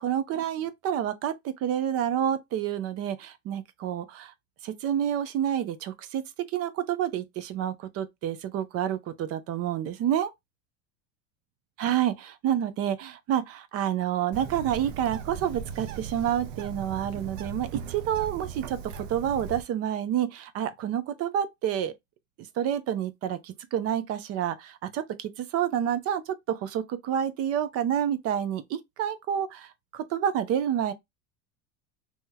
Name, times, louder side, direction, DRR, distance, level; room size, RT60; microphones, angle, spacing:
voice 1, 0.0-4.3 4.6-6.2 6.5-10.3 11.8-21.9 22.6-30.9, right 10 dB, 40° right, 0.6 m, -29 dB
Bird, 14.3-19.6, right 7 dB, 80° right, 0.8 m, -38 dB
3.0 x 2.8 x 3.7 m
supercardioid pair, 135°, 38 cm